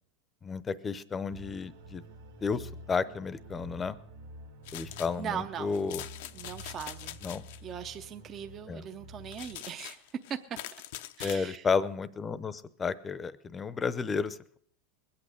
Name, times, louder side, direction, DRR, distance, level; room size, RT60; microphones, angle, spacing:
voice 1, 0.4-2.0 2.4-4.0 4.7-6.0 7.2-7.4 8.7-8.8 11.2-14.6, left 5 dB, 20° left, 17 dB, 0.7 m, -32 dB
sound 1, 1.3-9.6, right 1 dB, 85° right, 2.3 m, -49 dB
sound 2, 4.7-5.2 5.7-7.6 9.3-11.4, left 13 dB, 70° left, 0.6 m, -43 dB
voice 2, 5.2-5.7 6.3-7.2 7.6-10.0 10.3-10.6 11.2-11.7, right 8 dB, 30° right, 7 dB, 0.7 m, -39 dB
21.5 x 8.6 x 6.6 m, 0.64 s
supercardioid pair, 130°, 0 cm